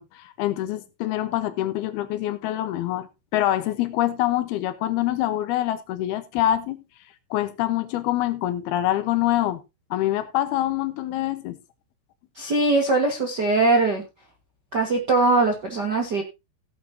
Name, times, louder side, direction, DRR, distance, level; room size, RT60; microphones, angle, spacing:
voice 1, 0.0-6.8 7.3-9.6 9.9-11.6, left 13 dB, 90° left, 2.9 m, -25 dB
voice 2, 12.3-14.0 14.7-16.2, right 3 dB, 55° right, 1.1 m, -21 dB
16.5 x 8.3 x 2.7 m
omnidirectional pair, 4.5 m